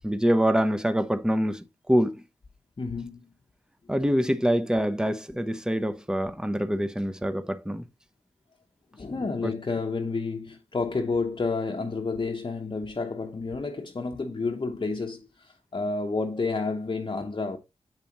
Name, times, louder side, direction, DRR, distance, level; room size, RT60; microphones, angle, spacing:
voice 1, 0.0-2.2 3.9-7.8 9.4-9.5, equal, 5° right, 0.8 m, -25 dB
voice 2, 2.8-3.3 8.9-17.6, left 4 dB, 40° left, 0.9 m, -30 dB
7.4 x 5.0 x 2.9 m
cardioid pair, 50°, 12 cm